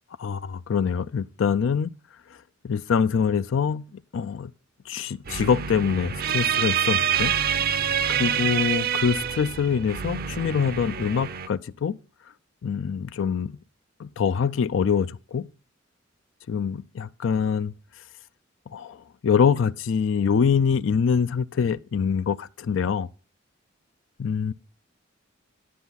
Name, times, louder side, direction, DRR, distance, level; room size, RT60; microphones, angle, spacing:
voice 1, 0.2-1.9 2.6-4.5 4.9-7.3 8.1-12.0 12.6-13.6 14.0-15.5 16.5-17.7 18.7-23.1 24.2-24.5, left 6 dB, 75° left, 0.4 m, -24 dB
sound 1, 5.3-11.5, right 8 dB, 50° right, 0.6 m, -26 dB
10.0 x 9.4 x 3.9 m
head